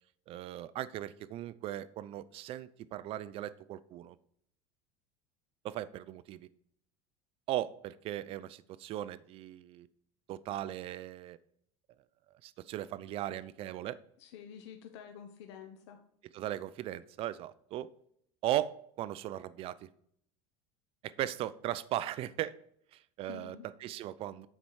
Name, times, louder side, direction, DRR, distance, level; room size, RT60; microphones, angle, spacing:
voice 1, 0.3-4.2 5.6-6.5 7.5-9.9 10.3-11.4 12.4-14.0 16.3-17.9 18.4-19.9 21.0-22.5 22.9-23.6 23.8-24.5, right 13 dB, 45° right, 17 dB, 0.4 m, -38 dB
voice 2, 14.2-16.0 23.3-23.7, left 8 dB, 85° left, 6 dB, 0.9 m, -49 dB
7.4 x 5.5 x 4.7 m, 0.67 s
supercardioid pair, 140°, 14 cm